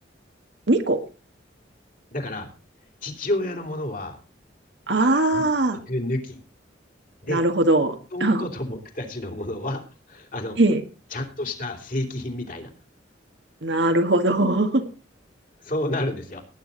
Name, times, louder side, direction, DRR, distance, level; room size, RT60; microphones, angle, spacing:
voice 1, 0.7-1.0 4.9-5.8 7.3-8.4 10.6-10.8 13.6-14.8, right 2 dB, 65° right, 7 dB, 1.7 m, -20 dB
voice 2, 2.1-2.5 3.0-4.2 5.3-5.4 5.7-6.4 7.2-7.4 8.1-10.6 11.1-12.7 15.6-16.4, left 1 dB, 45° left, 3 dB, 3.1 m, -30 dB
18.5 x 9.5 x 4.0 m, 0.34 s
head